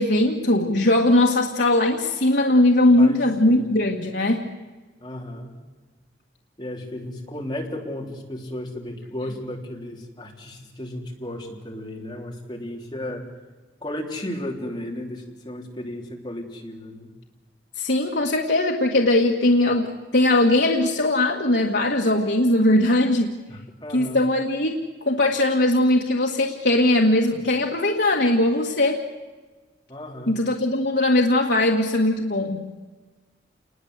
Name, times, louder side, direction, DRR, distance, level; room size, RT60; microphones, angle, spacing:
voice 1, 0.0-4.5 17.8-23.4 23.9-29.1 30.3-32.7, left 1 dB, 65° left, 1 dB, 1.7 m, -20 dB
voice 2, 2.9-3.8 5.0-5.6 6.6-13.3 13.8-17.1 23.5-24.2 29.9-30.3, left 1 dB, 25° left, 1 dB, 3.7 m, -34 dB
28.5 x 20.5 x 8.1 m, 1.3 s
head